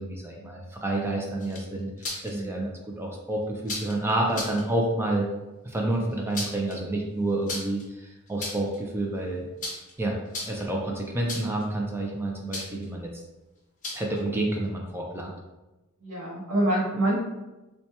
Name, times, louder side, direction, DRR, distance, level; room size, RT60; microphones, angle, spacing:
voice 1, 0.0-5.3 5.6-9.5 10.0-10.2 10.5-13.2 13.9-15.3, right 2 dB, 10° right, -1 dB, 0.3 m, -29 dB
sound 1, 1.4-2.3 3.6-4.0 4.3-4.6 6.1-6.8 7.5-7.8 8.3-8.8 9.6-9.9 10.3-10.7 11.3-11.6 12.5-12.9 13.8-14.2, left 2 dB, 35° left, 0.8 m, -35 dB
voice 2, 2.3-2.7 16.0-17.2, right 1 dB, 85° right, -6 dB, 0.7 m, -26 dB
4.3 x 2.2 x 2.8 m, 1.1 s
head